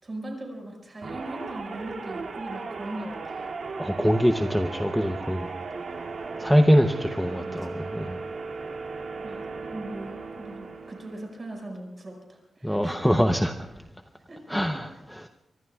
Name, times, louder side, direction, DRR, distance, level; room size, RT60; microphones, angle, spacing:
voice 1, 0.0-3.5 7.2-7.8 9.2-13.0 14.3-14.6, right 1 dB, 30° right, 1 dB, 5.3 m, -39 dB
sound 1, 1.0-11.4, right 4 dB, 55° right, 2.3 m, -36 dB
voice 2, 3.8-5.5 6.4-8.2 12.6-13.5 14.5-15.3, equal, ahead, 5 dB, 0.7 m, -23 dB
25.0 x 24.0 x 2.3 m, 0.96 s
wide cardioid pair, 155°, 0 cm